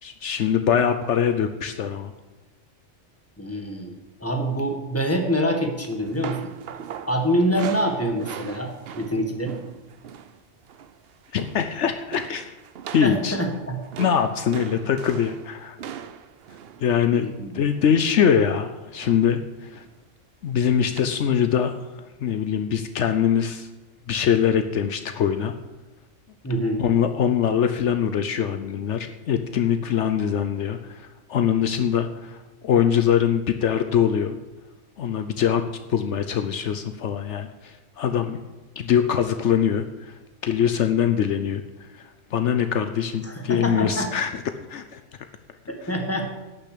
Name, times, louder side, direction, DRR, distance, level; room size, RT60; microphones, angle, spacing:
voice 1, 0.0-2.1 11.3-12.6 12.9-13.4 14.0-15.8 16.8-17.3 17.5-19.8 20.4-23.7 24.1-25.5 26.8-34.4 35.0-35.6 35.9-38.4 38.8-44.4 44.7-45.0, left 8 dB, 70° left, 8 dB, 1.0 m, -23 dB
voice 2, 3.4-3.9 4.2-6.5 7.1-8.7 9.0-9.5 13.0-13.8 17.1-17.5 26.4-26.8 43.2-44.1 45.7-46.3, equal, 10° left, 3 dB, 1.7 m, -25 dB
sound 1, 5.8-10.4 10.6-11.0 11.2-11.7 12.1-18.1 19.0-19.4 19.7-19.9 21.0-21.1, right 8 dB, 60° right, 0.8 m, -39 dB
11.5 x 6.8 x 8.4 m, 1.1 s
omnidirectional pair, 1.3 m